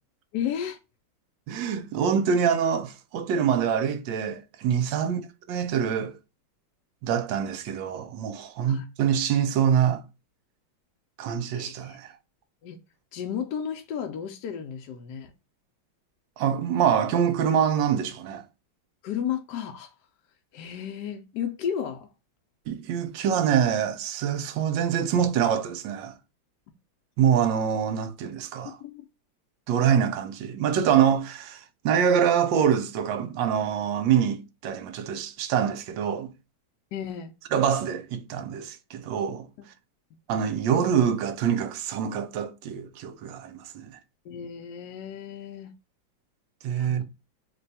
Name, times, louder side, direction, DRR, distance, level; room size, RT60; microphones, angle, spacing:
voice 1, 0.3-0.8 5.0-5.1 8.7-8.8 11.5-12.0 12.6-12.8 13.1-15.3 19.0-19.9 20.5-22.1 28.8-29.1 36.9-37.3 39.6-39.7 44.2-45.7 46.7-47.0, left 8 dB, 75° left, 1.0 m, -33 dB
voice 2, 1.5-5.2 5.5-6.2 7.0-10.0 11.2-12.1 16.4-18.4 22.7-26.1 27.2-28.7 29.7-36.3 37.5-39.5 40.3-43.9 46.6-47.0, right 8 dB, 75° right, 1.2 m, -25 dB
3.2 x 2.3 x 3.9 m
omnidirectional pair, 2.2 m